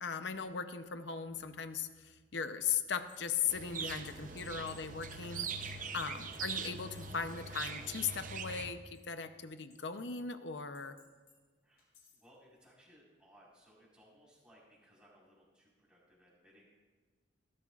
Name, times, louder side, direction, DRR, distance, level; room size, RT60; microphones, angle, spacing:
voice 1, 0.0-5.5 5.9-11.0, left 7 dB, 65° left, 9 dB, 0.7 m, -38 dB
sound 1, 3.1-8.7 8.9-10.2 10.7-11.4 11.8-12.3, left 2 dB, 50° left, 4.7 m, -63 dB
sound 2, 3.5-8.7, right 5 dB, 45° right, 0.7 m, -42 dB
voice 2, 12.1-16.7, equal, 5° right, -6 dB, 4.5 m, -63 dB
19.0 x 13.0 x 2.5 m, 1.4 s
head